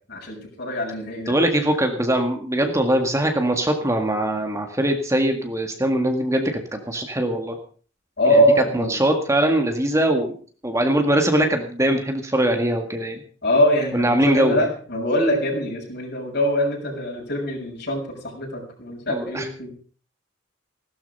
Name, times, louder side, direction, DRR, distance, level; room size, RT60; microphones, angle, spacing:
voice 1, 0.1-1.4 8.2-9.0 13.4-19.7, equal, 55° left, 0 dB, 6.9 m, -23 dB
voice 2, 1.3-7.6 8.7-10.3 10.6-13.2 13.9-14.7 19.1-19.5, right 1 dB, 15° right, 4 dB, 1.8 m, -21 dB
16.5 x 12.5 x 5.5 m, 0.43 s
head